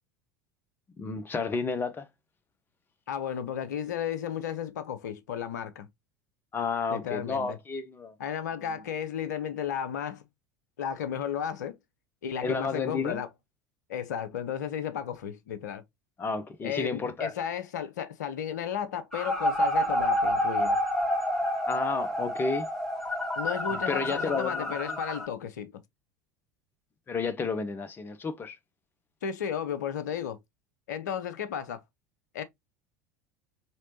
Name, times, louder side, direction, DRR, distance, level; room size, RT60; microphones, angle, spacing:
voice 1, 1.0-2.1 6.5-8.1 8.7-8.8 12.4-13.2 16.2-17.3 21.7-22.7 23.9-24.8 27.1-28.6, left 4 dB, 20° left, 0.6 m, -31 dB
voice 2, 3.1-5.9 6.9-7.6 8.2-10.2 10.8-11.8 12.2-13.3 13.9-15.8 16.6-20.8 23.4-25.7 29.2-30.4 30.9-31.8 32.3-32.4, left 8 dB, 65° left, 0.6 m, -33 dB
sound 1, 19.1-25.3, equal, 5° left, 1.4 m, -28 dB
4.3 x 3.0 x 2.8 m
figure-of-eight pair, 75°, 10 cm